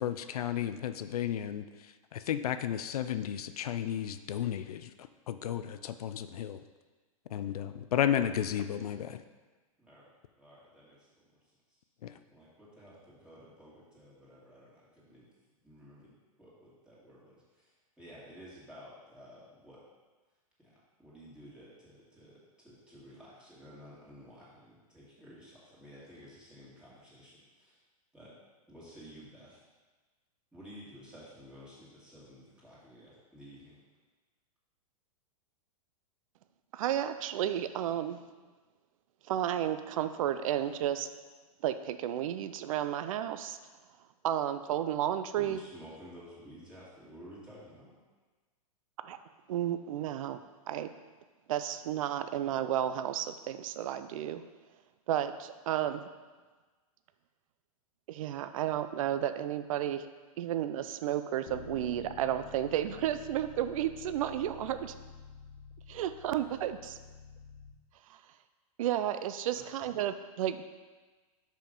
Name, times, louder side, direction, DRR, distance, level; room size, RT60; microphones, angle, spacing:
voice 1, 0.0-1.6 2.1-6.6 7.3-9.2 12.0-12.1, left 10 dB, 80° left, 11 dB, 0.4 m, -33 dB
voice 2, 9.8-10.1 10.4-11.1 11.7-11.8 12.3-15.3 15.6-16.1 16.4-19.8 20.6-27.8 28.1-28.3 28.7-29.6 30.5-33.8 44.7-44.8 45.0-48.0 69.5-69.9, equal, 5° right, -8 dB, 2.1 m, -53 dB
voice 3, 36.7-38.2 39.3-41.1 41.6-43.6 44.2-45.6 49.0-49.2 49.5-50.4 50.7-50.9 51.5-54.4 55.1-56.0 58.1-60.0 60.4-64.9 65.9-67.0 68.8-70.7, right 11 dB, 65° right, 11 dB, 0.5 m, -32 dB
Bass guitar, 61.5-67.7, left 5 dB, 65° left, 1.4 m, -50 dB
5.6 x 5.1 x 5.3 m, 1.3 s
hypercardioid pair, 135°, 19 cm